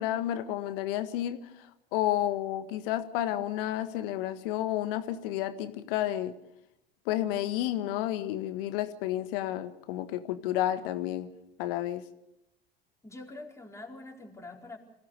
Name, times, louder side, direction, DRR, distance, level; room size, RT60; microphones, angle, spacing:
voice 1, 0.0-1.4 1.9-6.3 7.0-11.3 11.6-12.0, left 13 dB, 70° left, 10 dB, 1.7 m, -31 dB
voice 2, 13.0-14.8, left 2 dB, 10° left, 0 dB, 4.6 m, -45 dB
25.5 x 17.0 x 6.7 m, 0.82 s
hypercardioid pair, 70°, 30 cm